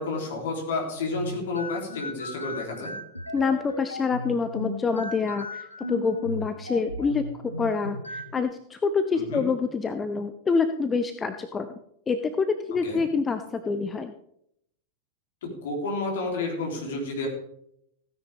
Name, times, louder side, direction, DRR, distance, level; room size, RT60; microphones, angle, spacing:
voice 1, 0.0-2.9 9.1-9.5 12.8-13.0 15.4-17.3, left 3 dB, 60° left, 1 dB, 3.7 m, -30 dB
sound 1, 0.9-8.4, left 2 dB, 90° left, 0.8 m, -36 dB
voice 2, 3.3-11.7 12.1-14.1, left 5 dB, 15° left, 9 dB, 0.7 m, -26 dB
16.0 x 9.8 x 3.6 m, 0.73 s
figure-of-eight pair, 90°, 0 cm